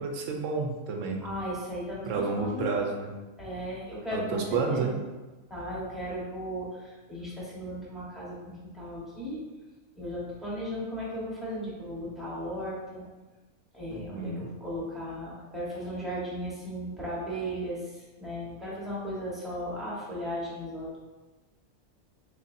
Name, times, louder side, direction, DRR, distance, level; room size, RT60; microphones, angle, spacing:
voice 1, 0.0-1.2 2.1-3.1 4.1-4.9 13.9-14.5, right 4 dB, 70° right, 2 dB, 0.9 m, -30 dB
voice 2, 1.2-2.8 3.4-5.0 5.5-9.4 9.9-13.1 13.7-21.0, equal, ahead, -8 dB, 1.0 m, -36 dB
4.1 x 3.2 x 2.6 m, 1.2 s
omnidirectional pair, 1.4 m